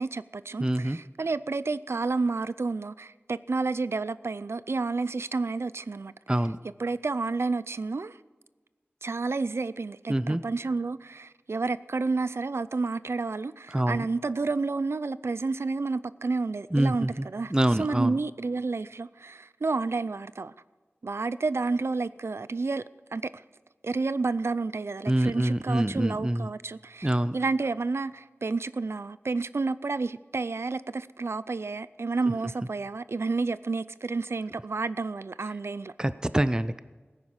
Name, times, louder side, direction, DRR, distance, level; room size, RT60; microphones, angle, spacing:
voice 1, 0.0-6.1 6.8-8.2 9.0-17.5 17.8-20.5 21.0-22.8 23.1-23.4 23.8-35.9, right 3 dB, 85° right, 16 dB, 0.4 m, -30 dB
voice 2, 0.6-1.0 6.3-6.6 10.1-10.4 13.7-14.1 16.7-17.3 17.5-18.1 25.1-26.5 27.0-27.4 36.0-36.8, right 1 dB, 20° right, 14 dB, 0.5 m, -25 dB
16.0 x 9.7 x 6.1 m, 1.3 s
wide cardioid pair, 55°, 4 cm